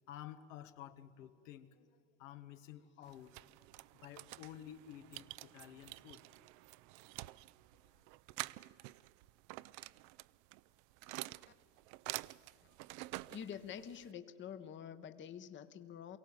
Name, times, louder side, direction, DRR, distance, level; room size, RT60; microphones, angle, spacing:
voice 1, 0.1-3.7 3.9-6.2 7.8-8.0, left 11 dB, 80° left, 10 dB, 1.2 m, -53 dB
sound 1, 3.0-14.1, right 20 dB, 55° right, 0.5 m, -49 dB
voice 2, 13.3-16.2, left 8 dB, 30° left, 11 dB, 0.9 m, -47 dB
23.0 x 16.5 x 7.4 m, 2.5 s
supercardioid pair, 105°, 37 cm